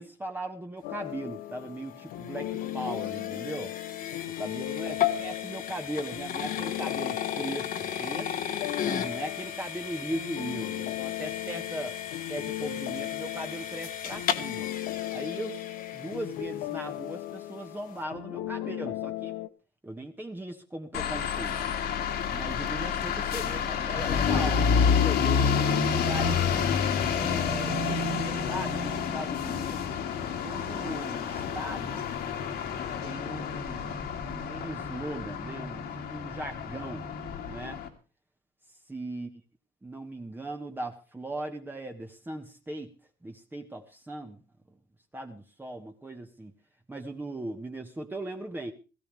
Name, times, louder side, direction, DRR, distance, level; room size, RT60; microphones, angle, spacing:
voice 1, 0.0-3.7 4.2-8.5 8.8-12.0 12.3-14.7 15.1-19.4 19.8-21.6 22.3-26.5 27.1-29.9 30.4-32.0 33.0-37.1 37.5-37.8 38.9-39.3 39.8-42.9 43.2-44.4 45.1-46.5 46.9-48.7, right 1 dB, 10° right, 3 dB, 1.4 m, -38 dB
sound 1, 0.8-19.5, left 15 dB, 90° left, 0.9 m, -37 dB
sound 2, 1.5-16.7, left 9 dB, 55° left, 1.6 m, -35 dB
sound 3, 20.9-37.9, left 6 dB, 70° left, 2.5 m, -29 dB
18.0 x 15.0 x 3.4 m, 0.33 s
cardioid pair, 110°, 17 cm